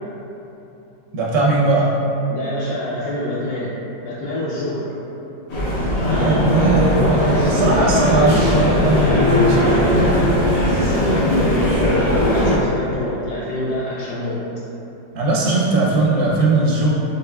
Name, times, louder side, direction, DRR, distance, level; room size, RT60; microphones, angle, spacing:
voice 1, 1.1-1.9 6.1-10.4 15.1-16.9, right 2 dB, 60° right, -5 dB, 0.8 m, -19 dB
voice 2, 2.3-3.7 4.0-4.9 9.6-9.9 10.7-14.4, left 1 dB, 70° left, -9 dB, 1.1 m, -26 dB
sound 1, 5.5-12.6, left 1 dB, 90° left, 1.9 m, -18 dB
5.5 x 3.6 x 2.3 m, 3.0 s
omnidirectional pair, 2.0 m